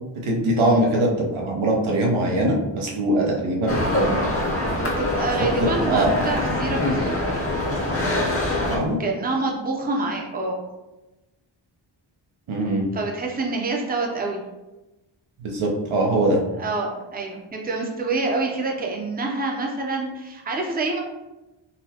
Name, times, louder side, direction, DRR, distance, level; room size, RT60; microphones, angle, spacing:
voice 1, 0.2-4.1 5.6-6.1 8.7-9.0 12.5-12.9 15.4-16.4, right 1 dB, 90° right, -1 dB, 0.8 m, -22 dB
sound 1, 3.7-8.8, left 1 dB, 30° left, 0.7 m, -24 dB
voice 2, 4.6-7.1 8.0-8.6 9.0-10.6 12.9-14.4 16.6-21.0, right 3 dB, 20° right, 0 dB, 0.5 m, -27 dB
4.0 x 2.2 x 2.8 m, 1.0 s
wide cardioid pair, 90°, 47 cm